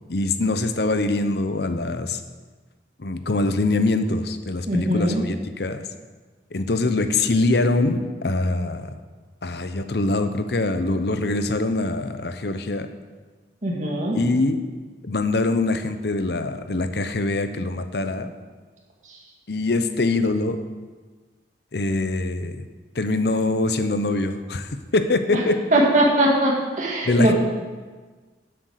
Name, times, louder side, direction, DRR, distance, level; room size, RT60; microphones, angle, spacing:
voice 1, 0.1-2.2 3.0-5.8 6.5-8.9 9.4-12.9 14.1-14.6 15.0-18.3 19.5-20.6 21.7-22.7 23.0-25.6 27.0-27.3, left 2 dB, 60° left, 10 dB, 0.8 m, -23 dB
voice 2, 4.7-5.2 13.6-14.2 25.7-27.3, right 1 dB, 40° right, -3 dB, 2.2 m, -20 dB
11.0 x 7.8 x 6.5 m, 1.4 s
head